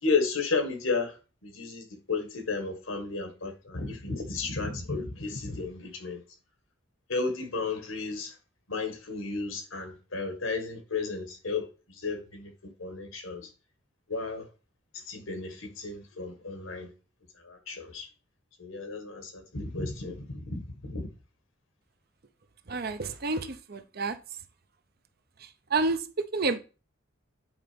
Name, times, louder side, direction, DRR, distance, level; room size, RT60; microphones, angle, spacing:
voice 1, 0.0-6.2 7.1-8.4 8.7-13.5 14.1-14.5 14.9-16.9 17.4-18.1 18.6-21.1, left 4 dB, 80° left, 1.7 m, -33 dB
voice 2, 22.7-24.2 25.7-26.6, right 3 dB, 50° right, 0.7 m, -29 dB
8.8 x 3.9 x 5.2 m
head